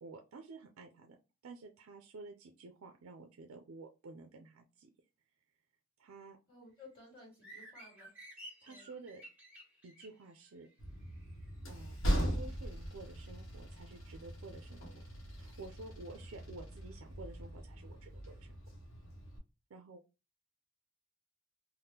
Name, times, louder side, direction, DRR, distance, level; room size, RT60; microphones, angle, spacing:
voice 1, 0.0-1.2 1.4-4.9 6.0-6.4 8.6-9.2 9.8-10.7 11.7-14.8 15.4-18.6 19.7-20.0, right 3 dB, 75° right, 4 dB, 0.4 m, -51 dB
voice 2, 6.5-8.1 8.7-8.9, left 2 dB, 25° left, -2 dB, 1.7 m, -56 dB
sound 1, 7.3-11.5, right 1 dB, 10° right, 1.3 m, -54 dB
Train, 10.8-19.4, equal, 70° left, 0.9 m, -40 dB
3.5 x 2.1 x 2.8 m, 0.29 s
head